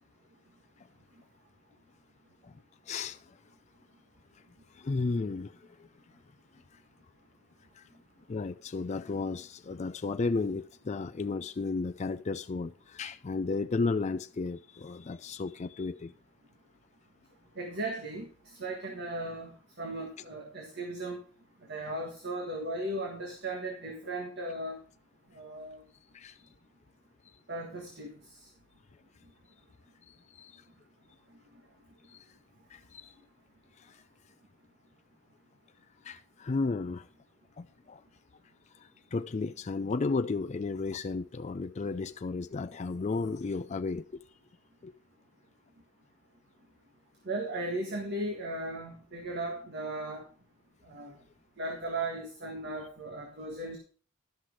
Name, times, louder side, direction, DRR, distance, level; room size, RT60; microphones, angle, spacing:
voice 1, 2.9-3.2 4.7-5.6 7.8-7.9 8.3-16.1 26.1-26.4 30.1-30.6 32.1-32.2 32.7-33.1 33.8-33.9 36.0-37.1 37.6-38.0 38.8-44.2 44.8-44.9, left 3 dB, 35° left, 0.4 m, -33 dB
voice 2, 17.6-18.3 18.6-21.2 21.7-24.8 25.3-25.8 27.5-28.1 47.2-50.2 50.9-51.1 51.6-53.8, right 2 dB, 50° right, 1.6 m, -36 dB
11.5 x 6.0 x 4.8 m
head